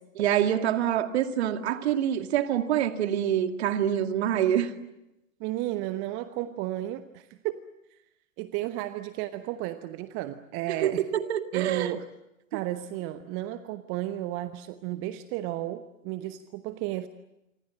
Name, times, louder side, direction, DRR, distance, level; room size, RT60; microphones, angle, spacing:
voice 1, 0.2-4.7 10.8-11.9 12.5-12.6, right 10 dB, 50° right, 8 dB, 2.1 m, -26 dB
voice 2, 5.4-7.6 7.9-8.0 8.4-11.1 11.5-12.1 12.5-17.1, right 14 dB, 30° right, 11 dB, 1.1 m, -33 dB
28.0 x 25.5 x 7.6 m, 0.90 s
figure-of-eight pair, 105°, 41 cm